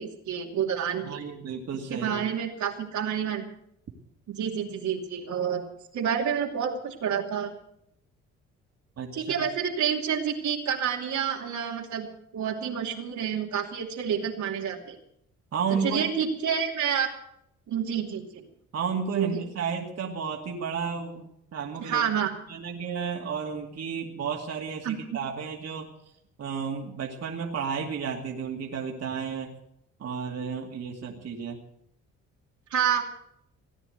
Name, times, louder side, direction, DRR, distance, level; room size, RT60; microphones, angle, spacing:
voice 1, 0.0-1.2 1.9-3.4 4.3-5.6 5.9-7.5 9.1-12.1 12.3-15.0 15.8-17.1 17.7-18.4 19.2-19.4 21.8-22.3 24.8-25.2 32.7-33.0, right 8 dB, 70° right, 1 dB, 2.7 m, -29 dB
voice 2, 1.0-2.2 9.0-9.3 15.5-16.1 18.7-22.0 22.5-25.9 26.4-29.5 30.0-31.6, right 6 dB, 55° right, 1 dB, 2.4 m, -32 dB
17.5 x 9.7 x 8.0 m, 0.74 s
cardioid pair, 90°, 30 cm